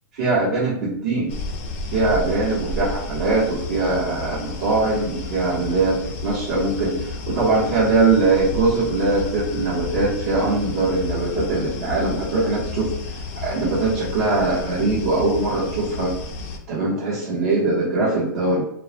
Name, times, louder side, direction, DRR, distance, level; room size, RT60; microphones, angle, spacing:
voice 1, 0.2-1.4 1.9-12.9 13.4-16.1 16.7-18.6, right 3 dB, 50° right, -9 dB, 0.9 m, -21 dB
sound 1, 1.3-16.6, left 3 dB, 40° left, 0.4 m, -32 dB
2.3 x 2.0 x 2.8 m, 0.72 s
hypercardioid pair, 165°, 11 cm